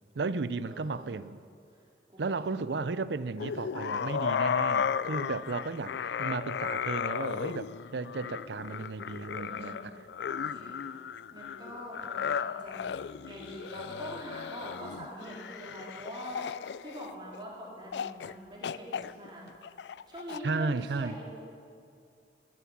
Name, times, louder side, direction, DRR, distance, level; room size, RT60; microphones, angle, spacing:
voice 1, 0.1-1.4 2.2-10.0 20.4-21.2, right 4 dB, 75° right, 0.5 m, -34 dB
voice 2, 0.7-1.1 2.1-2.6 9.4-9.9 10.3-10.8 11.3-12.9 13.2-19.5 20.1-21.2, equal, 25° right, 3.9 m, -44 dB
sound 1, 3.4-17.4 17.9-18.3 18.6-20.4, left 7 dB, 75° left, 0.3 m, -35 dB
15.5 x 12.0 x 7.3 m
head